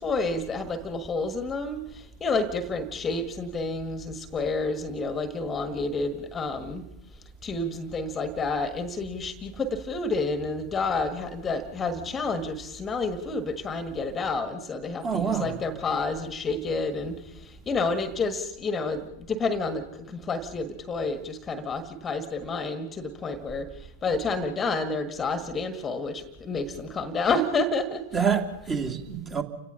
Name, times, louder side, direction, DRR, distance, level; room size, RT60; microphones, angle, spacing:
voice 1, 0.0-6.8 7.4-28.3, left 3 dB, 20° left, 11 dB, 1.5 m, -29 dB
voice 2, 15.0-15.5 28.1-29.4, right 6 dB, 25° right, 4 dB, 2.5 m, -26 dB
30.0 x 17.0 x 5.6 m, 0.91 s
figure-of-eight pair, 90°, 0 cm